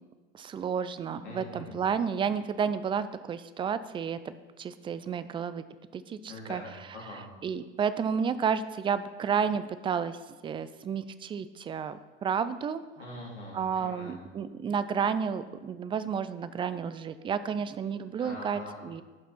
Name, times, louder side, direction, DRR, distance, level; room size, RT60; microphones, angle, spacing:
voice 1, 0.3-5.6 5.9-6.6 7.4-10.2 10.4-12.8 13.5-19.0, right 7 dB, 15° right, 13 dB, 0.3 m, -31 dB
voice 2, 1.2-1.8 6.3-7.2 13.0-14.2 18.2-18.8, left 1 dB, 80° left, -5 dB, 3.1 m, -43 dB
12.5 x 5.8 x 4.3 m, 1.3 s
figure-of-eight pair, 75°, 34 cm